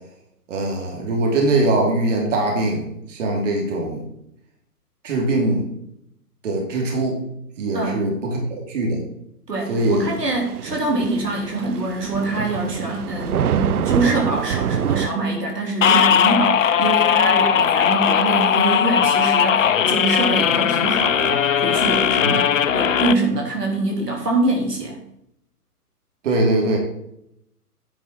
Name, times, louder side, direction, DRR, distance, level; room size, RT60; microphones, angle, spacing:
voice 1, 0.5-4.0 5.0-5.6 6.4-7.2 7.6-9.0 9.7-10.1 22.2-22.4 26.2-26.8, right 2 dB, 50° right, 0 dB, 2.9 m, -22 dB
voice 2, 9.5-25.0, right 2 dB, 85° right, 0 dB, 3.2 m, -24 dB
Thunder / Rain, 9.8-15.1, right 8 dB, 70° right, 0.6 m, -26 dB
sound 1, 15.8-23.1, left 8 dB, 55° left, 0.7 m, -18 dB
10.0 x 5.5 x 4.4 m, 0.76 s
hypercardioid pair, 140°, 47 cm